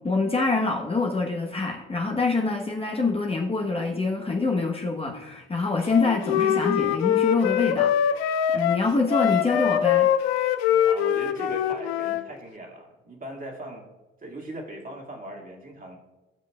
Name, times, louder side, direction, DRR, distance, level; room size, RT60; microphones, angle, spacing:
voice 1, 0.0-8.2 8.5-10.1, left 3 dB, 20° left, 0 dB, 1.1 m, -25 dB
Wind instrument woodwind instrument, 5.9-12.2, left 10 dB, 75° left, 0.5 m, -23 dB
voice 2, 10.8-13.9 14.2-16.0, right 1 dB, 25° right, 0 dB, 2.1 m, -39 dB
15.5 x 6.2 x 2.3 m, 1.1 s
hypercardioid pair, 60°, 31 cm